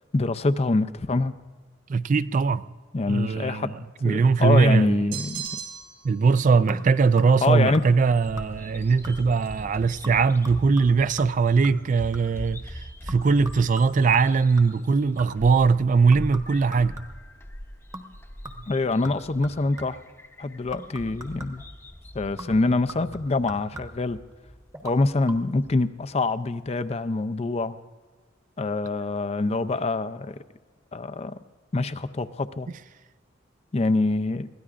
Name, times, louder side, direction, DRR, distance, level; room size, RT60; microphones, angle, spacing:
voice 1, 0.1-1.3 2.9-3.7 4.0-5.5 7.4-7.8 18.7-20.0 20.4-21.6 22.1-24.2 24.8-27.8 28.6-30.4 30.9-31.4 31.7-32.7 33.7-34.5, left 3 dB, 35° left, 0.5 m, -25 dB
voice 2, 1.9-2.6 3.1-3.7 4.0-5.1 6.0-12.6 13.1-17.0, right 4 dB, 40° right, 0.3 m, -21 dB
sound 1, 5.1-6.1, right 8 dB, 85° right, 3.5 m, -35 dB
sound 2, 6.7-7.5 7.7-8.1 8.4-8.8 9.0-9.5 10.0-12.5 13.1-15.5 16.1-17.4 17.9-18.2 18.4-20.1 20.7-21.7 22.4-24.2 24.7-25.0 25.3-25.4, right 1 dB, 15° right, 1.1 m, -42 dB
Bird vocalization bird call bird song, 7.6-25.8, equal, 10° left, 0.8 m, -43 dB
23.0 x 17.0 x 2.5 m
head